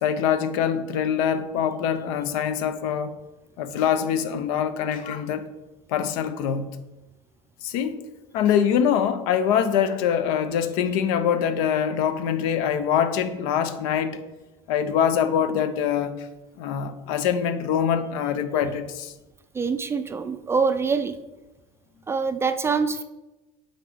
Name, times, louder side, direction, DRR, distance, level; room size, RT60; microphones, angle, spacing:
voice 1, 0.0-3.1 3.6-5.4 5.9-6.6 7.6-8.0 8.3-14.2 14.7-16.2 16.6-19.1, left 8 dB, 85° left, 11 dB, 0.7 m, -24 dB
voice 2, 19.5-21.2 22.1-23.0, right 5 dB, 15° right, 9 dB, 0.3 m, -24 dB
8.2 x 4.0 x 5.0 m, 1.1 s
cardioid pair, 145°, 17 cm